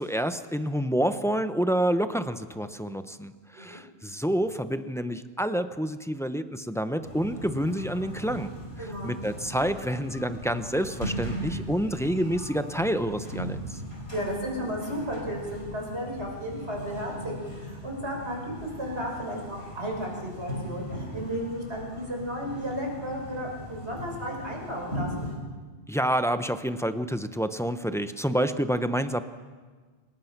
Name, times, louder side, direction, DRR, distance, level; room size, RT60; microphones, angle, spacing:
voice 1, 0.0-8.5 9.0-13.8 25.9-29.2, equal, 5° left, 9 dB, 0.7 m, -28 dB
sound 1, 7.0-25.4, equal, 70° left, 5.2 m, -38 dB
voice 2, 8.8-9.2 14.1-25.3, equal, 80° right, 0 dB, 5.9 m, -34 dB
27.0 x 20.5 x 6.0 m, 1.4 s
omnidirectional pair, 1.1 m